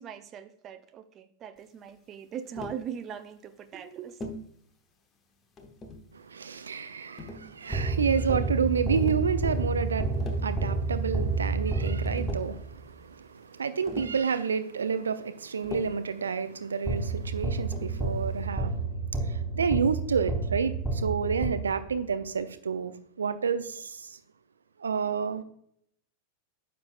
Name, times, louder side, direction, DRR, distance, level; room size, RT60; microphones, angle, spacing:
voice 1, 0.0-4.2, right 8 dB, 30° right, 0.6 m, -40 dB
Tap, 2.5-2.9 4.2-4.5 5.6-6.1 7.2-7.9 8.9-9.3 10.0-10.5 11.7-11.8 12.0-12.6 13.9-14.3 15.6-16.1 17.7-18.0, left 2 dB, 25° left, 0.9 m, -41 dB
voice 2, 6.1-18.8 19.3-24.2 24.8-25.4, right 6 dB, 70° right, 0.5 m, -30 dB
sound 1, 7.7-12.8 16.9-22.1, right 3 dB, ahead, 1.2 m, -30 dB
9.5 x 6.0 x 2.5 m
figure-of-eight pair, 90°, 0 cm